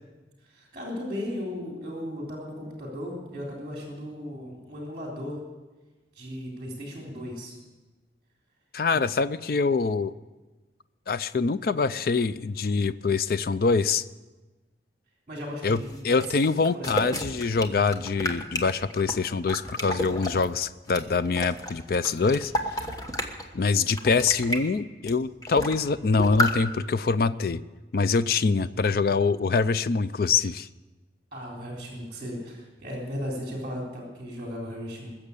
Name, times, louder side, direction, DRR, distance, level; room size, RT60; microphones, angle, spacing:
voice 1, 0.5-5.4 6.2-7.6 15.3-16.2 16.5-17.0 31.3-35.1, equal, 30° right, -2 dB, 3.5 m, -36 dB
voice 2, 8.7-10.1 11.1-14.0 15.6-22.9 23.5-27.6 27.9-30.7, left 4 dB, 55° left, 14 dB, 0.4 m, -25 dB
sound 1, 15.8-20.5 20.9-23.5 23.8-24.6 25.1-25.2 25.4-25.9 26.2-26.5, equal, 20° left, 1.1 m, -31 dB
20.5 x 7.2 x 8.3 m, 1.2 s
head